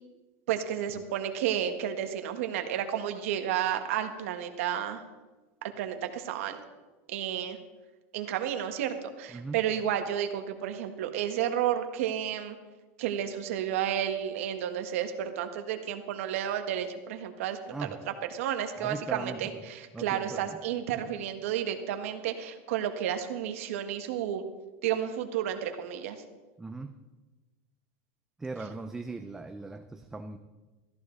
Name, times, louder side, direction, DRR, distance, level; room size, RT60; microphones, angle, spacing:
voice 1, 0.5-5.0 5.8-6.6 7.1-7.6 8.1-12.6 13.0-17.9 18.3-24.4 24.8-26.2, right 10 dB, 75° right, 6 dB, 1.5 m, -31 dB
voice 2, 9.3-9.6 17.7-18.1 18.8-19.6 19.9-20.6 26.6-27.0 28.4-30.4, right 3 dB, 5° right, 6 dB, 0.4 m, -39 dB
14.0 x 14.0 x 4.0 m, 1.2 s
supercardioid pair, 175°, 7 cm